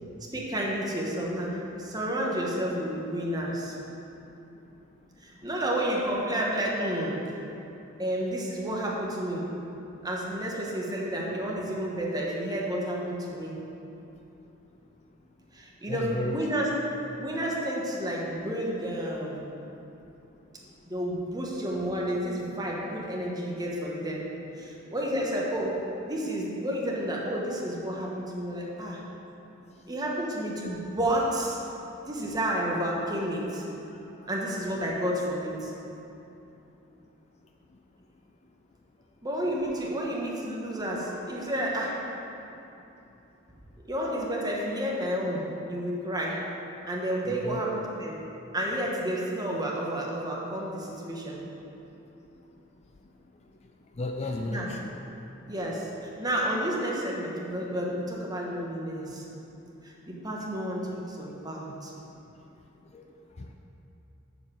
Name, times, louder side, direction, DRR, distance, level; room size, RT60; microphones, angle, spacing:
voice 1, 0.2-3.8 5.2-7.2 8.0-9.5 10.0-13.5 15.5-16.7 17.2-19.4 20.9-24.3 24.6-29.0 29.9-31.6 32.1-33.7 34.3-35.7 39.2-42.1 43.9-46.4 46.9-48.2 48.5-51.4 54.5-54.7 55.5-59.2 59.8-61.9, right 1 dB, 20° right, -3 dB, 1.2 m, -31 dB
voice 2, 15.9-16.4 33.9-34.0 47.3-47.9 54.0-54.9 62.9-63.1 63.4-63.5, left 1 dB, 30° left, 3 dB, 0.4 m, -34 dB
7.1 x 5.8 x 7.4 m, 2.9 s
head